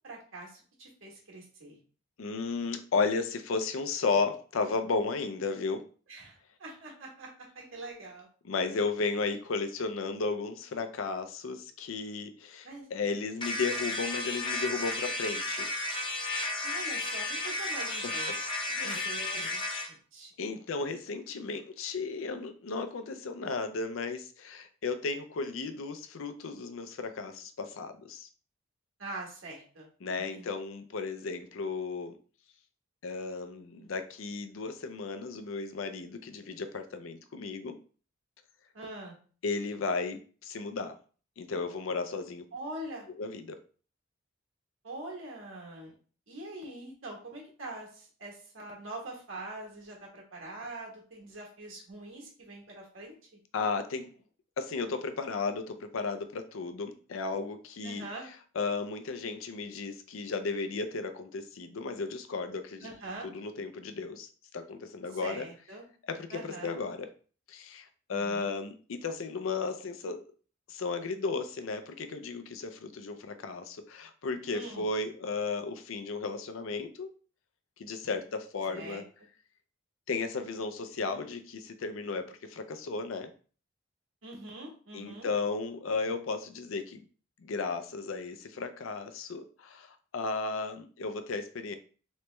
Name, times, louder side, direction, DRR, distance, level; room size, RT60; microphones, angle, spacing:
voice 1, 0.0-1.8 6.1-8.3 12.6-12.8 16.6-18.3 18.7-19.6 19.9-20.3 29.0-29.9 30.2-30.5 38.7-39.2 42.5-43.1 44.8-45.9 46.3-53.2 57.8-58.3 62.8-63.3 65.1-65.8 66.3-66.8 68.1-68.5 74.5-74.9 78.1-78.2 78.7-79.0 84.2-85.3, right 2 dB, 75° right, -2 dB, 1.4 m, -43 dB
voice 2, 2.2-5.8 8.4-15.7 17.9-18.4 18.8-19.0 19.3-19.5 20.4-28.3 30.0-32.1 33.0-37.8 39.4-40.9 41.4-42.5 43.2-43.6 53.5-54.1 54.6-58.1 58.5-62.9 63.2-64.3 64.5-65.5 66.1-67.1 67.5-70.2 70.7-77.1 77.8-79.0 80.1-83.3 84.9-87.0 87.4-91.7, left 4 dB, 80° left, 9 dB, 0.5 m, -34 dB
sound 1, 13.4-19.9, left 2 dB, 25° left, 0.6 m, -33 dB
3.1 x 3.0 x 3.2 m, 0.40 s
head